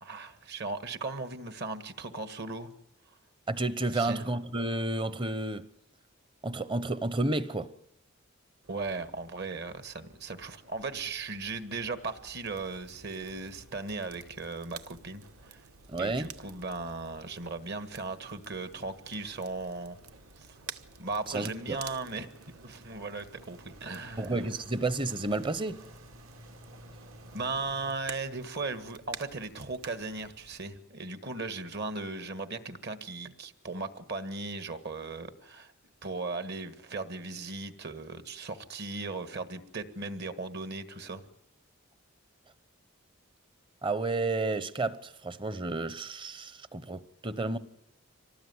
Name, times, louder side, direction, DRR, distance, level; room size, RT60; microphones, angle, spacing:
voice 1, 0.0-2.7 3.9-4.2 8.7-15.6 16.0-20.0 20.4-20.6 21.0-22.3 22.6-24.3 27.3-35.7 36.0-41.2, right 3 dB, 50° right, 1.7 m, -37 dB
voice 2, 3.5-5.7 6.4-7.7 15.9-16.3 21.3-21.8 24.2-25.8 43.8-47.6, right 2 dB, 25° right, 0.9 m, -31 dB
sound 1, 8.6-27.9, right 1 dB, 70° right, 3.2 m, -55 dB
Crackle, 12.4-30.6, right 8 dB, 85° right, 1.0 m, -51 dB
25.0 x 19.0 x 9.6 m
head